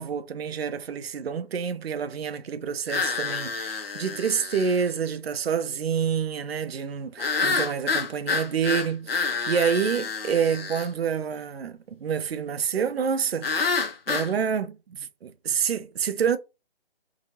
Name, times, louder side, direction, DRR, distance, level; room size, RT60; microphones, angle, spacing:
voice 1, 0.0-16.4, right 7 dB, 75° right, 0.4 m, -28 dB
sound 1, 2.9-4.9 7.2-10.9 13.4-14.3, left 4 dB, 65° left, 0.7 m, -28 dB
2.9 x 2.2 x 2.7 m
figure-of-eight pair, 145°, 31 cm